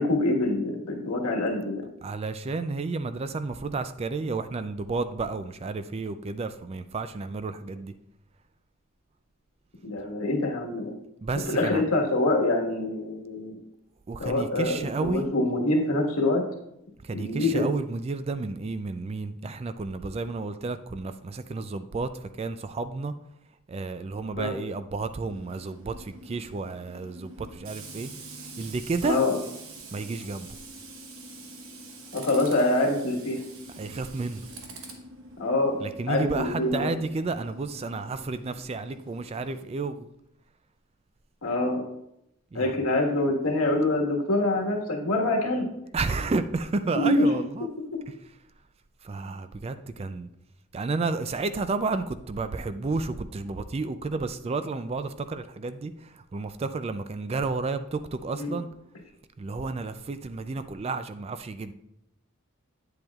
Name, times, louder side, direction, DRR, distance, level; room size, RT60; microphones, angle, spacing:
voice 1, 0.0-1.9 9.8-10.9 11.5-13.5 14.2-16.4 17.1-17.7 24.4-24.5 29.0-29.4 32.1-33.4 35.4-35.8 36.1-36.9 41.4-41.8 42.5-45.7 46.9-47.3 58.4-58.6, left 2 dB, 85° left, 0 dB, 1.5 m, -25 dB
voice 2, 2.0-7.9 11.2-11.8 14.1-15.3 17.0-23.1 23.7-28.1 28.6-29.2 29.9-30.6 33.8-34.5 35.8-40.1 42.5-42.7 45.9-47.7 49.0-50.3 50.7-58.7 59.4-61.7, right 3 dB, 30° right, 11 dB, 0.3 m, -31 dB
Tools, 25.3-39.6, right 2 dB, 65° right, 1.1 m, -45 dB
8.7 x 7.9 x 2.4 m, 0.81 s
head